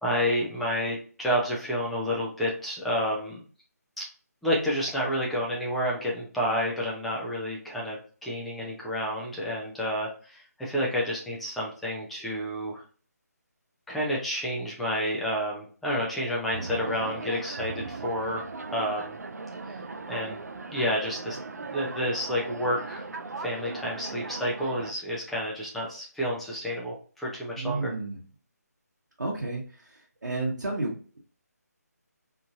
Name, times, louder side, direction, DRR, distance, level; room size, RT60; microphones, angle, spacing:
voice 1, 0.0-3.4 4.0-4.1 4.4-12.8 13.9-19.2 20.1-20.4 20.7-23.0 23.4-27.9, equal, ahead, -4 dB, 0.4 m, -30 dB
sound 1, 16.5-24.9, right 3 dB, 70° right, 0.4 m, -38 dB
voice 2, 27.6-28.2 29.2-29.6 30.2-31.2, right 2 dB, 85° right, -3 dB, 0.8 m, -31 dB
3.0 x 2.5 x 2.4 m, 0.41 s
figure-of-eight pair, 155°, 9 cm